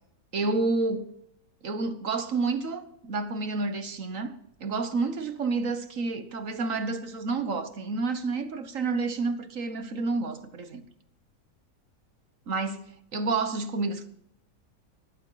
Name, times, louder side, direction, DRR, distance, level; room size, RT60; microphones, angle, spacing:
voice 1, 0.3-1.1 1.6-4.3 4.6-10.8 12.5-14.1, right 3 dB, 55° right, 1.5 m, -29 dB
19.5 x 14.5 x 4.0 m
omnidirectional pair, 1.7 m